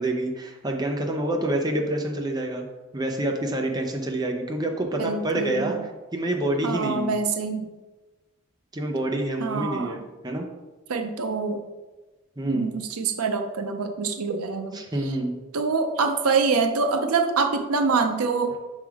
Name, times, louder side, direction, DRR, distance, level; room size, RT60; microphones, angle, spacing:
voice 1, 0.0-2.7 2.9-5.8 6.1-7.1 8.7-10.0 10.2-10.5 12.4-12.7 14.7-15.4, right 1 dB, 20° right, 2 dB, 0.6 m, -27 dB
voice 2, 5.0-5.8 6.6-7.7 9.4-10.0 10.9-11.6 12.5-15.2 15.5-18.6, right 4 dB, 90° right, 6 dB, 0.6 m, -25 dB
6.0 x 3.7 x 4.7 m, 1.2 s
head